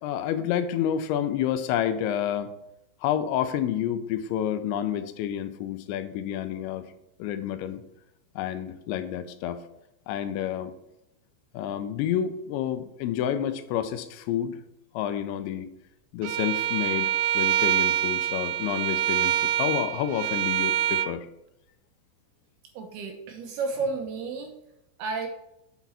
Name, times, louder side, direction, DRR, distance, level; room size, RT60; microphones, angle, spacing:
voice 1, 0.0-2.5 3.0-6.8 7.2-7.8 8.4-9.6 10.1-10.7 11.5-14.6 14.9-15.7 16.1-21.3, left 10 dB, 85° left, 10 dB, 3.0 m, -29 dB
Bowed string instrument, 16.2-21.1, right 12 dB, 90° right, 2.9 m, -25 dB
voice 2, 22.7-24.5 25.0-25.3, right 4 dB, 75° right, 3 dB, 2.6 m, -31 dB
9.5 x 6.1 x 4.2 m, 0.84 s
omnidirectional pair, 5.2 m